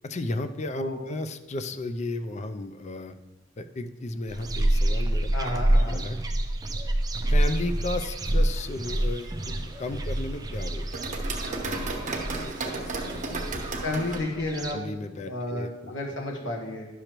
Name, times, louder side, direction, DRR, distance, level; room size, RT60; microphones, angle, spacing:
voice 1, 0.0-3.1 3.6-5.3 5.9-6.2 7.3-11.0 11.6-13.6 14.3-16.0, left 2 dB, 35° left, 10 dB, 0.4 m, -35 dB
sound 1, 4.3-14.7, right 1 dB, 20° right, 0.5 m, -27 dB
voice 2, 5.3-6.0 13.8-14.8 15.3-16.9, left 1 dB, 70° left, 0 dB, 1.3 m, -31 dB
sound 2, 7.2-14.2, right 3 dB, 40° right, 1.2 m, -36 dB
11.0 x 6.6 x 3.0 m, 1.1 s
head